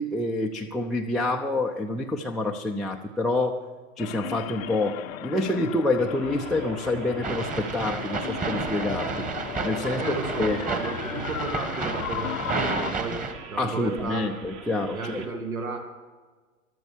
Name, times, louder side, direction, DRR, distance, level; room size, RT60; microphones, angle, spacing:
voice 1, 0.0-3.7 4.0-9.3 9.6-10.6 13.6-15.2, left 2 dB, ahead, 5 dB, 0.4 m, -27 dB
sound 1, 4.0-12.9, left 12 dB, 75° left, 0.6 m, -36 dB
sound 2, 6.0-15.3, right 7 dB, 40° right, 1.9 m, -43 dB
sound 3, 7.2-13.3, right 4 dB, 20° right, 1.7 m, -31 dB
voice 2, 10.0-13.2 13.5-14.3 14.9-15.8, right 3 dB, 80° right, 2 dB, 3.0 m, -33 dB
14.0 x 12.5 x 6.7 m, 1.4 s
figure-of-eight pair, 100°, 42 cm